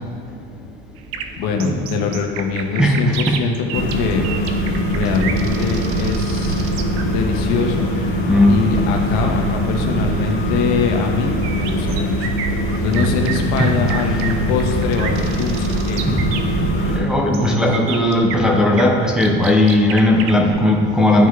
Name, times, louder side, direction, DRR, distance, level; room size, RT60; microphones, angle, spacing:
sound 1, 1.0-7.0 11.4-20.5, right 7 dB, 75° right, 0.7 m, -30 dB
voice 1, 1.4-4.5 4.9-6.7 7.0-7.9 8.5-12.3 12.8-16.1 17.1-17.6, left 5 dB, 80° left, 3 dB, 1.0 m, -23 dB
voice 2, 2.8-3.4 8.3-8.6 12.9-13.1 13.6-13.7 16.1-16.2 16.6-21.3, left 1 dB, ahead, -1 dB, 0.5 m, -17 dB
sound 2, 3.7-17.0, equal, 35° left, 1.5 m, -22 dB
11.5 x 4.7 x 2.3 m, 2.3 s
cardioid pair, 135°, 38 cm